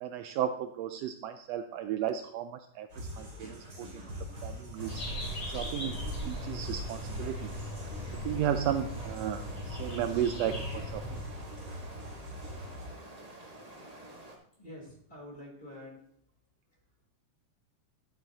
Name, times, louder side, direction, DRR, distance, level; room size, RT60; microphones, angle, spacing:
voice 1, 0.0-2.9 3.2-4.0 4.4-5.0 5.5-7.5 8.1-11.2, right 10 dB, 90° right, 8 dB, 1.4 m, -34 dB
sound 1, 2.9-12.9, equal, 35° right, 3.5 m, -42 dB
sound 2, 4.8-14.4, right 1 dB, 65° right, 0.4 m, -49 dB
sound 3, 4.9-11.2, equal, 50° left, 4.5 m, -40 dB
voice 2, 14.5-16.1 16.7-16.8, left 1 dB, 20° left, -3 dB, 3.3 m, -47 dB
11.0 x 9.0 x 2.8 m, 0.65 s
omnidirectional pair, 3.4 m